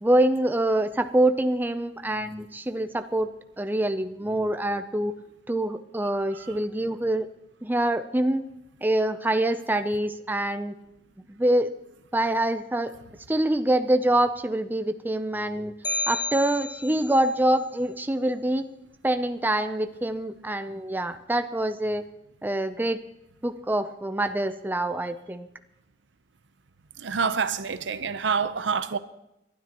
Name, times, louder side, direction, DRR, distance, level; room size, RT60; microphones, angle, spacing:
voice 1, 0.0-3.3 3.6-5.1 5.5-7.3 7.6-8.5 8.8-10.8 11.3-11.7 12.1-12.9 13.3-15.7 16.1-18.7 19.0-22.0 22.4-23.0 23.4-25.5, right 1 dB, 10° right, 0.5 m, -25 dB
sound 1, 15.8-17.2, left 1 dB, 25° left, 1.7 m, -31 dB
voice 2, 27.0-29.0, right 5 dB, 75° right, 0.7 m, -27 dB
29.5 x 12.0 x 3.0 m
head